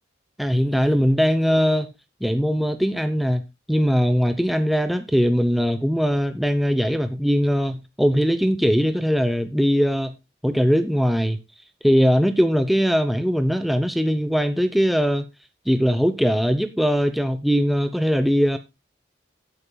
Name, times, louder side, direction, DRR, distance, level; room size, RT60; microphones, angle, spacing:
voice 1, 0.4-1.9 2.2-3.4 3.7-10.1 10.4-11.4 11.8-15.2 15.7-18.6, equal, ahead, 0.8 m, -20 dB
17.0 x 8.9 x 2.2 m
head